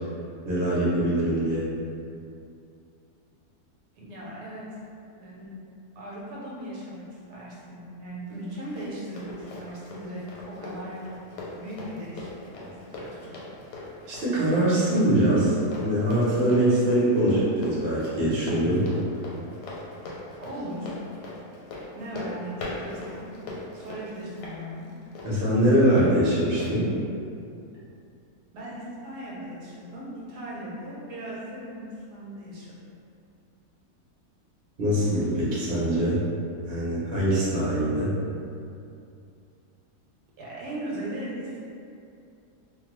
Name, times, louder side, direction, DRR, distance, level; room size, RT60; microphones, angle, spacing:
voice 1, 0.4-1.6 14.1-18.8 25.2-26.9 34.8-36.2 36.7-38.1, right 1 dB, 50° right, -8 dB, 0.8 m, -23 dB
voice 2, 3.9-4.6 5.2-5.5 6.0-7.0 7.3-11.0 11.5-12.7 13.0-13.3 20.4-20.9 21.9-23.3 23.7-24.9 28.5-32.7 40.4-41.7, right 1 dB, 80° right, -6 dB, 1.1 m, -38 dB
Run, 8.3-26.1 26.6-26.7, left 2 dB, 85° left, 1.2 m, -40 dB
2.6 x 2.2 x 2.9 m, 2.5 s
omnidirectional pair, 1.7 m